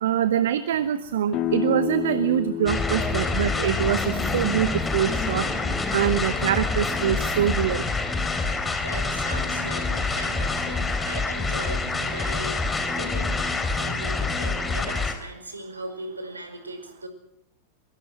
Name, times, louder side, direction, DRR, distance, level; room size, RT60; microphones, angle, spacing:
voice 1, 0.0-5.5 5.9-7.8, right 10 dB, 60° right, 13 dB, 1.0 m, -24 dB
sound 1, 1.3-6.9, left 10 dB, 35° left, 1.8 m, -33 dB
sound 2, 2.7-15.1, left 3 dB, 15° left, 3.9 m, -26 dB
voice 2, 8.8-13.5 13.8-17.1, right 1 dB, 80° right, 8 dB, 5.2 m, -38 dB
23.0 x 23.0 x 6.2 m, 0.76 s
figure-of-eight pair, 90°, 0 cm